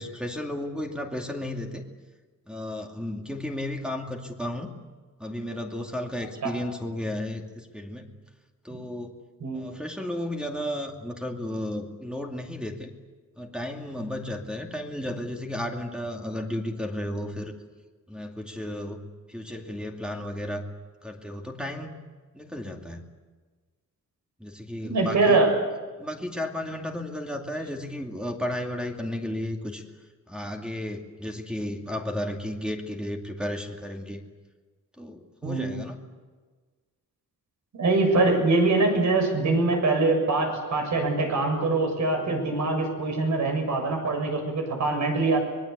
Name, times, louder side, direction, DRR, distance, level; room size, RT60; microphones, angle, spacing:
voice 1, 0.0-1.8 2.5-4.7 5.2-8.1 8.6-9.2 9.5-12.9 13.4-17.5 18.1-19.0 19.3-20.6 21.0-21.9 22.3-23.0 24.4-25.4 26.0-29.8 30.3-34.2 35.0-36.0, left 1 dB, 5° right, 2 dB, 2.5 m, -33 dB
voice 2, 24.8-25.5 35.4-35.7 37.7-45.4, right 3 dB, 60° right, 3 dB, 7.3 m, -23 dB
25.0 x 21.5 x 8.3 m, 1.4 s
wide cardioid pair, 145°, 32 cm